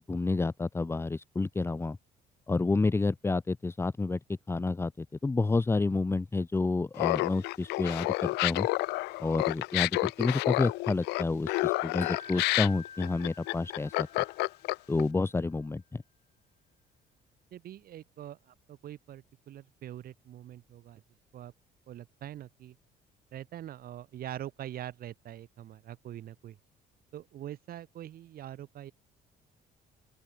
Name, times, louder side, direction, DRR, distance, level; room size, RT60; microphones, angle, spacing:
voice 1, 0.0-2.0 2.5-8.7 9.2-14.1 14.9-16.0, left 3 dB, 15° left, 0.9 m, -29 dB
Laughter, 7.0-15.0, left 22 dB, 85° left, 0.4 m, -29 dB
Wind chime, 12.0-15.1, left 7 dB, 40° left, 3.5 m, -48 dB
voice 2, 17.5-21.0 21.3-21.5 21.9-22.8 23.3-26.6 27.1-28.9, right 12 dB, 60° right, 3.6 m, -44 dB
open air
cardioid pair, 110°, 17 cm